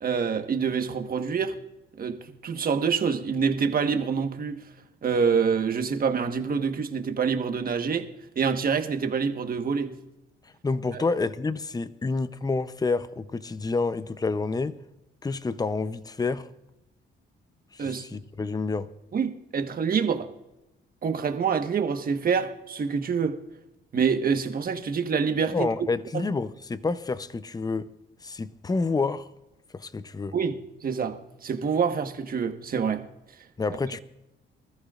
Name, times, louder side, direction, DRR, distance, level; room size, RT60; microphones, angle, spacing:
voice 1, 0.0-1.6 2.0-4.6 5.0-8.1 8.3-10.0 10.9-11.0 17.8-18.1 19.1-20.3 21.0-23.4 23.9-25.7 26.1-26.2 30.3-33.0, right 6 dB, 45° right, 1.4 m, -26 dB
voice 2, 10.6-14.8 15.2-16.5 17.7-18.9 25.5-27.9 28.2-29.3 29.7-30.3 33.6-34.0, left 3 dB, 20° left, 0.7 m, -28 dB
24.5 x 14.0 x 2.5 m
cardioid pair, 90°, 20 cm